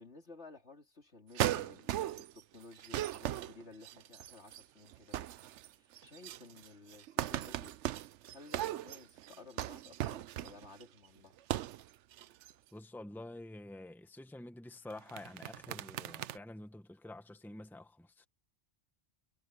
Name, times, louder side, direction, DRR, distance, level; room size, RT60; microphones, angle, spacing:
voice 1, 0.0-5.3 5.7-7.8 8.3-11.4, left 3 dB, 70° left, 3.3 m, -55 dB
sound 1, 1.3-2.4 2.7-4.6 4.9-5.7 5.9-10.8 11.4-11.8 12.1-12.5 14.9-16.4, right 13 dB, 80° right, 0.9 m, -38 dB
voice 2, 12.7-18.3, left 1 dB, ahead, 1.4 m, -48 dB
omnidirectional pair, 1.2 m